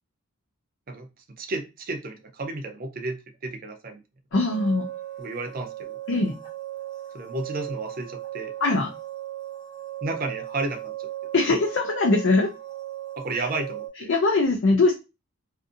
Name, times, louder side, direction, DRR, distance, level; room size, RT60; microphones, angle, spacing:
voice 1, 1.4-4.0 5.2-6.0 7.1-8.5 10.0-11.3 13.2-14.1, right 2 dB, 45° right, 5 dB, 0.4 m, -32 dB
voice 2, 4.3-4.9 6.1-6.3 8.6-8.9 11.3-12.5 13.3-13.5 14.1-14.9, left 3 dB, 60° left, 1 dB, 0.4 m, -21 dB
sound 1, 4.3-13.9, right 13 dB, 25° left, 0.9 m, -37 dB
2.6 x 2.5 x 2.4 m, 0.27 s
head